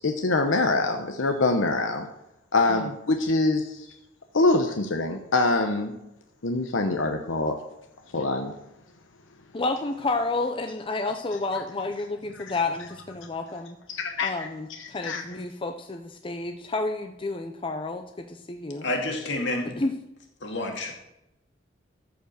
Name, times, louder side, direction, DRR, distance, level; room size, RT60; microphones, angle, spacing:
voice 1, 0.0-2.1 2.5-3.9 4.3-5.9 6.4-7.6 8.1-8.5 13.9-14.3 14.8-15.2, left 2 dB, 80° left, 4 dB, 0.9 m, -24 dB
voice 2, 9.5-13.8 14.2-18.8 19.8-19.9, left 3 dB, 25° left, 5 dB, 0.6 m, -30 dB
voice 3, 18.8-19.7 20.4-20.9, left 2 dB, 65° left, 1 dB, 2.3 m, -29 dB
14.0 x 5.2 x 6.7 m, 0.89 s
head